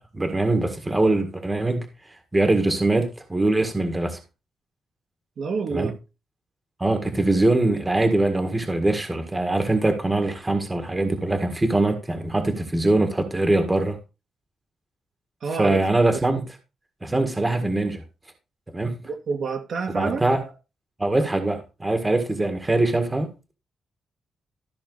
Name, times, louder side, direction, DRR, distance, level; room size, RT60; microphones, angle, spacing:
voice 1, 0.1-1.9 2.3-4.2 5.7-5.9 6.8-14.0 15.6-16.4 17.0-18.0 18.7-19.0 19.9-20.4 21.0-23.3, right 2 dB, 15° right, 1.8 m, -22 dB
voice 2, 5.4-5.9 15.4-16.2 19.0-20.3, right 5 dB, 50° right, 2.0 m, -28 dB
14.0 x 6.1 x 4.0 m
wide cardioid pair, 155°, 0 cm